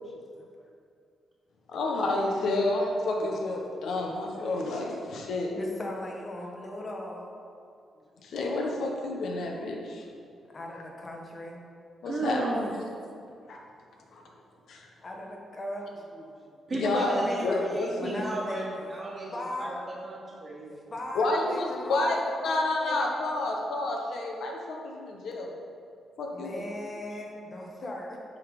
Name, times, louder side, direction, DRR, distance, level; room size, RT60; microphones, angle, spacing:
voice 1, 1.7-5.5 8.2-10.0 12.0-12.8 13.5-13.6 14.1-14.2 14.7-14.9 16.7-17.1 17.4-18.2 21.1-22.2 22.4-25.5 26.2-26.6, left 2 dB, 75° left, 0 dB, 1.1 m, -30 dB
voice 2, 5.5-7.3 10.5-11.6 13.1-13.3 15.0-16.6 16.9-18.7 19.3-19.9 20.9-22.2 22.4-23.1 26.3-28.2, left 1 dB, 35° left, -1 dB, 1.4 m, -38 dB
voice 3, 12.0-12.7 16.7-19.3 19.6-19.7 20.0-20.7, right 2 dB, 35° right, -6 dB, 1.3 m, -33 dB
10.0 x 3.8 x 4.9 m, 2.3 s
cardioid pair, 85°, 0 cm